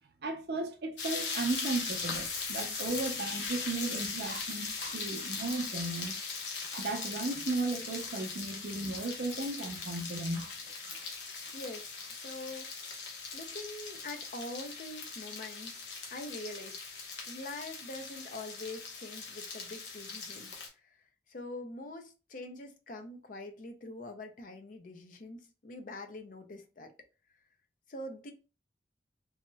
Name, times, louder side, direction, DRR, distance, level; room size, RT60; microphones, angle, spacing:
voice 1, 0.2-4.7 4.9-6.1 6.7-10.5, right 2 dB, 60° right, 0.5 m, -35 dB
sound 1, 1.0-20.7, left 4 dB, 85° left, 0.8 m, -40 dB
Chewing mastication, 3.4-4.0 4.2-5.0 5.4-5.7 6.0-6.9 7.2-7.5 7.9-9.6 9.8-11.1 11.4-12.8, right 2 dB, 75° right, 1.0 m, -55 dB
voice 2, 11.5-12.7 13.3-15.8 16.1-16.8 17.3-21.0 21.3-26.9 27.9-28.3, left 2 dB, 45° left, 0.5 m, -44 dB
2.9 x 2.7 x 2.2 m
head